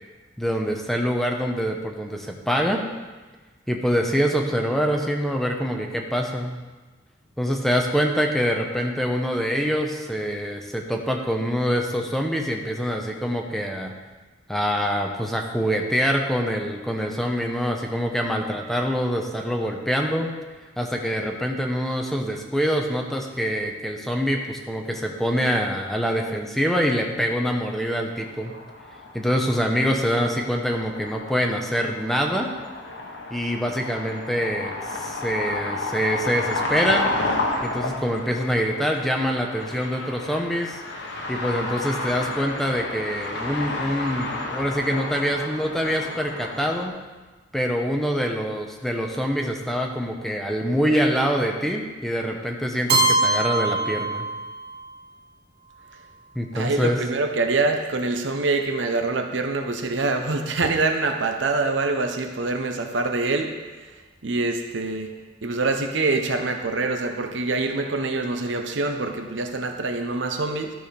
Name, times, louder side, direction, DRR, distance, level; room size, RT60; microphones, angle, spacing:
voice 1, 0.4-2.8 3.7-6.6 7.4-13.9 14.5-20.3 20.8-28.5 29.1-32.5 33.3-37.2 37.6-40.8 41.3-47.0 47.5-54.2 56.3-57.0, equal, ahead, 1 dB, 0.9 m, -25 dB
sound 1, 28.1-46.9, left 2 dB, 65° left, 1.2 m, -32 dB
Keyboard (musical), 52.9-54.8, right 2 dB, 55° right, 1.3 m, -22 dB
voice 2, 56.5-63.5 64.2-65.1 65.4-70.7, right 3 dB, 75° right, 4 dB, 0.8 m, -25 dB
12.5 x 4.9 x 5.2 m, 1.3 s
head